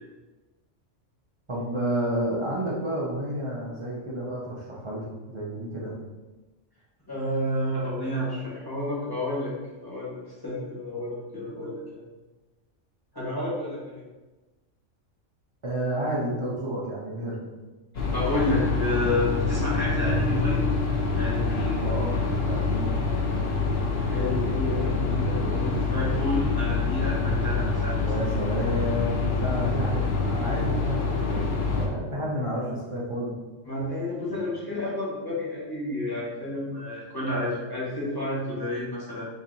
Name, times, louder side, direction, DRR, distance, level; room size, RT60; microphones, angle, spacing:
voice 1, 1.5-5.9 15.6-17.5 21.8-22.9 28.0-33.4 34.3-34.5, equal, 45° right, -6 dB, 0.4 m, -31 dB
voice 2, 7.1-9.5 9.8-12.0 13.1-14.0 17.9-20.6 21.2-21.8 24.1-28.1 33.6-39.3, left 1 dB, 20° left, -7 dB, 0.9 m, -30 dB
sound 1, 18.0-31.9, left 4 dB, 60° left, 0.8 m, -26 dB
2.9 x 2.7 x 3.9 m, 1.2 s
omnidirectional pair, 1.3 m